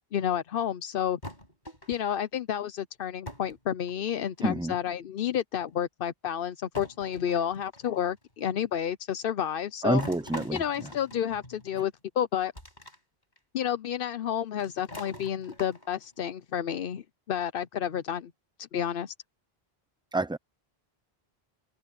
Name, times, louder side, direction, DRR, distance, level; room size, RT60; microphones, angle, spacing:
voice 1, 0.1-1.2 1.9-10.0 10.5-12.5 13.5-18.3 18.7-19.1, left 9 dB, 65° left, 0.8 m, -30 dB
sound 1, 1.2-2.2 3.3-3.6 3.9-4.5 5.5-5.6 6.7-8.1 10.0-11.8 12.5-13.0 13.4-13.5 14.6-16.1, left 1 dB, 45° left, 7.2 m, -43 dB
voice 2, 4.4-4.7 9.8-10.6 20.1-20.4, right 2 dB, 5° right, 0.4 m, -27 dB
open air
omnidirectional pair, 1.0 m